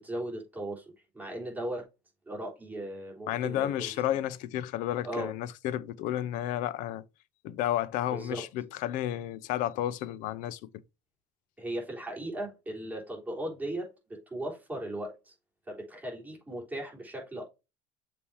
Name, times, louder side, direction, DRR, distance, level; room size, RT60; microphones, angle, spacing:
voice 1, 0.0-1.9 2.3-3.9 5.0-5.3 8.1-8.5 11.6-15.3 15.7-17.4, right 1 dB, 10° right, 3.6 m, -37 dB
voice 2, 3.3-7.0 7.4-10.7, left 12 dB, 65° left, 0.6 m, -32 dB
7.1 x 2.8 x 4.7 m
cardioid pair, 145°, 15 cm